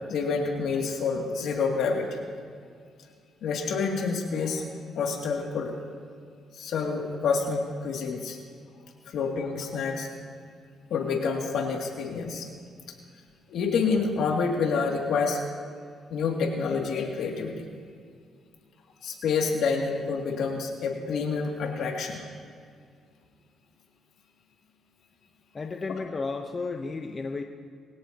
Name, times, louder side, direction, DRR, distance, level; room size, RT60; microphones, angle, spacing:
voice 1, 0.1-2.2 3.4-4.6 5.0-5.7 6.5-8.4 9.1-10.1 10.9-12.5 13.5-15.4 16.1-17.6 19.0-22.2, left 5 dB, 75° left, 0 dB, 2.7 m, -28 dB
voice 2, 25.5-27.4, left 4 dB, 35° left, 4 dB, 1.0 m, -33 dB
23.0 x 17.0 x 3.0 m, 2.2 s
cardioid pair, 90°, 0 cm